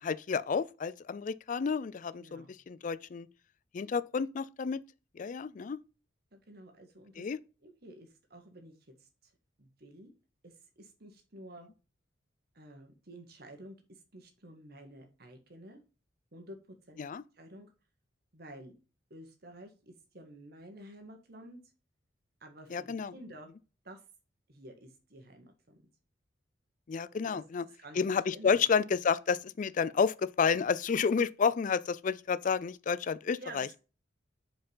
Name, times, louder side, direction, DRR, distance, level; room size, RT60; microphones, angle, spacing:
voice 1, 0.0-3.3 3.7-4.8 5.2-5.8 7.2-7.4 17.0-17.2 22.7-23.1 26.9-27.7 28.0-33.7, left 6 dB, 45° left, 0.3 m, -30 dB
voice 2, 2.2-2.6 6.3-7.3 7.6-8.7 9.0-9.3 9.6-10.1 10.4-11.7 12.5-13.8 14.1-15.8 16.3-16.6 16.9-17.0 17.3-17.7 18.3-18.8 19.1-21.6 22.4-23.5 23.8-24.0 24.5-25.9 27.1-28.0 28.3-28.6 33.3-33.8, right 1 dB, 55° right, 1.6 m, -51 dB
5.1 x 4.6 x 5.5 m
head